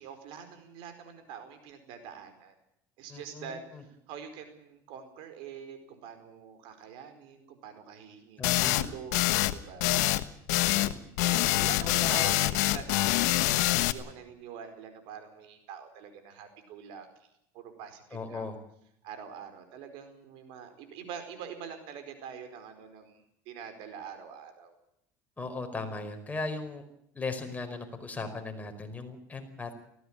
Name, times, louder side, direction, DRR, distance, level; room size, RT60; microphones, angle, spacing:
voice 1, 0.0-2.5 3.0-9.9 11.2-17.3 17.5-18.5 19.0-24.8, right 7 dB, 70° right, 8 dB, 4.7 m, -45 dB
voice 2, 3.1-3.8 8.4-8.8 10.5-11.0 11.8-12.5 18.1-18.5 25.4-26.8 27.1-29.7, left 3 dB, 15° left, 5 dB, 4.9 m, -38 dB
sound 1, 8.4-8.9 9.1-9.5 9.8-10.2 10.5-10.9 11.2-13.9, left 17 dB, 80° left, 1.3 m, -25 dB
19.0 x 16.5 x 8.9 m, 0.74 s
supercardioid pair, 100°, 9 cm